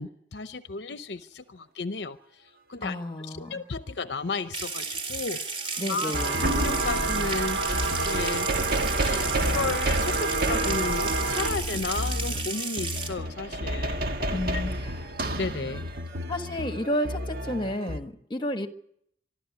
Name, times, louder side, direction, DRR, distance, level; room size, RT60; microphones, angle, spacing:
voice 1, 0.0-2.2 2.7-3.0 3.3-5.6 5.9-6.1 6.4-8.5 9.0-14.0 14.3-14.6 15.3-15.8, left 3 dB, 60° left, 11 dB, 0.7 m, -33 dB
voice 2, 2.8-3.6 5.8-6.4 14.3-15.0 16.3-18.7, left 1 dB, 25° left, 7 dB, 1.5 m, -31 dB
Water tap faucet / Sink (filling or washing) / Trickle dribble, 4.5-13.1, right 4 dB, 30° right, 2.6 m, -33 dB
sound 1, 5.6-5.8 6.1-18.0, right 1 dB, 50° right, 1.6 m, -31 dB
sound 2, 6.1-11.5, right 3 dB, 70° right, 3.2 m, -29 dB
25.5 x 12.5 x 9.7 m, 0.72 s
head